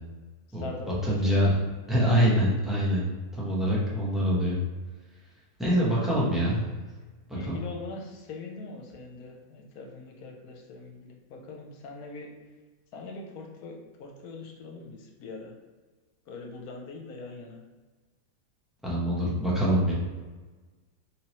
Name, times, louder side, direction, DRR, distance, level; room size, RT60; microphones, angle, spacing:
voice 1, 0.5-1.6 7.3-12.3 12.9-15.6 16.3-17.6, left 3 dB, 75° left, 1 dB, 1.1 m, -42 dB
voice 2, 1.0-1.5 1.9-4.6 5.6-6.7 7.5-7.6 18.8-19.9, equal, ahead, -7 dB, 0.4 m, -24 dB
3.5 x 3.0 x 3.0 m, 1.3 s
omnidirectional pair, 1.7 m